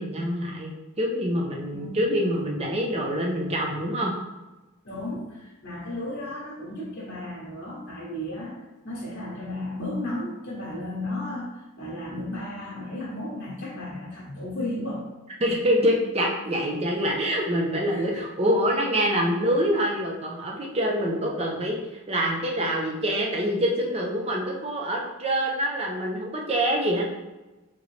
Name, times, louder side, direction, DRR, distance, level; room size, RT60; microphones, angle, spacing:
voice 1, 0.0-4.1 15.4-21.8 22.1-27.1, equal, 25° right, 0 dB, 0.5 m, -25 dB
voice 2, 1.7-2.1 4.8-15.1 16.9-17.1 17.8-18.2, left 1 dB, 50° left, -6 dB, 1.0 m, -34 dB
3.8 x 3.0 x 3.1 m, 1.1 s
head